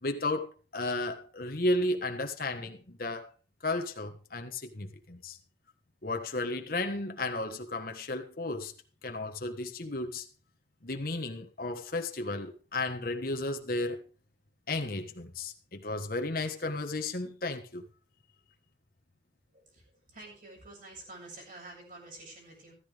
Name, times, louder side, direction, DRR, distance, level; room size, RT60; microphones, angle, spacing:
voice 1, 0.0-3.3 3.6-5.4 6.0-8.7 9.0-10.2 10.8-14.0 14.7-17.8, left 2 dB, 55° left, 1.5 m, -33 dB
voice 2, 19.5-22.7, right 2 dB, 50° right, 7.6 m, -49 dB
14.5 x 14.5 x 3.5 m
head